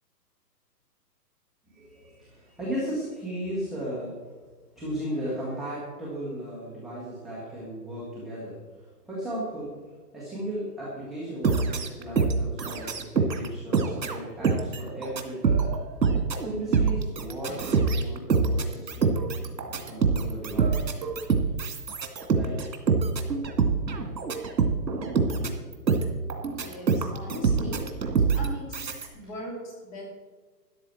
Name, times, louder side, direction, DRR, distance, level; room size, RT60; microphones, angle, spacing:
voice 1, 1.7-4.2 4.5-9.8 10.1-15.6 16.4-21.0 22.3-22.7 24.0-24.1 24.9-25.6, right 1 dB, ahead, -9 dB, 1.3 m, -36 dB
sound 1, 11.4-13.5 13.7-29.1, right 5 dB, 80° right, 2.4 m, -25 dB
voice 2, 26.5-27.9 28.2-30.0, left 1 dB, 15° left, -1 dB, 2.8 m, -39 dB
13.0 x 11.0 x 4.5 m, 1.4 s
hypercardioid pair, 165°, 50 cm